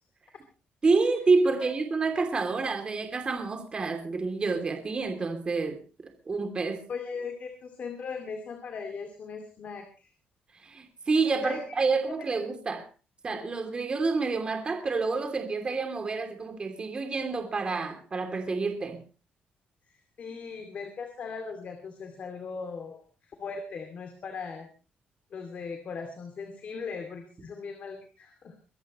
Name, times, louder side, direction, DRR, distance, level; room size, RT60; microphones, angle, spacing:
voice 1, 0.8-6.9 10.6-12.8 13.2-19.0, right 4 dB, 30° right, 2.9 m, -28 dB
voice 2, 6.9-10.1 11.4-11.8 12.1-12.2 13.3-13.5 20.2-23.0 23.4-24.7 25.3-28.5, left 5 dB, 50° left, 2.5 m, -39 dB
23.5 x 14.0 x 3.1 m
cardioid pair, 135°, 3 cm